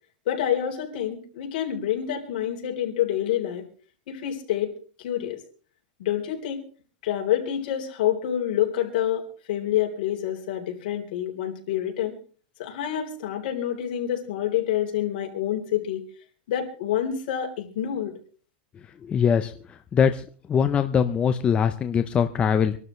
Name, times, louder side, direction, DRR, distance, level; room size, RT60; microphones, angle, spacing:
voice 1, 0.3-3.6 4.1-4.7 5.0-5.4 6.0-6.6 7.0-12.1 12.6-16.0 16.5-18.1, left 11 dB, 70° left, 2 dB, 3.8 m, -27 dB
voice 2, 19.1-19.5 19.9-20.2 20.5-22.8, left 7 dB, 20° left, 8 dB, 0.7 m, -21 dB
26.0 x 12.5 x 3.2 m, 0.42 s
supercardioid pair, 145°, 5 cm